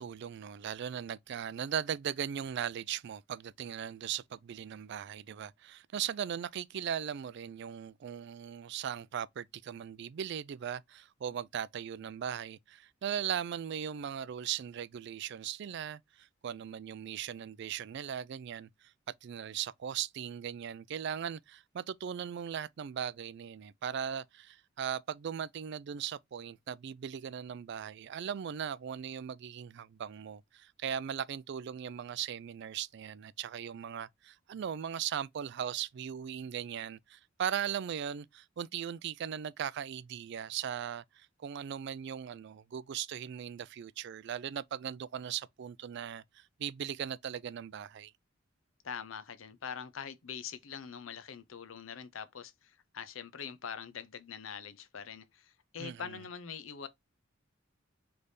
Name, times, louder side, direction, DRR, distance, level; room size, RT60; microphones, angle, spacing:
voice 1, 0.0-18.9 19.2-48.1 55.8-56.2, right 8 dB, 60° right, 0.3 m, -38 dB
voice 2, 48.8-56.9, left 7 dB, 85° left, 0.6 m, -43 dB
4.0 x 3.3 x 3.3 m
head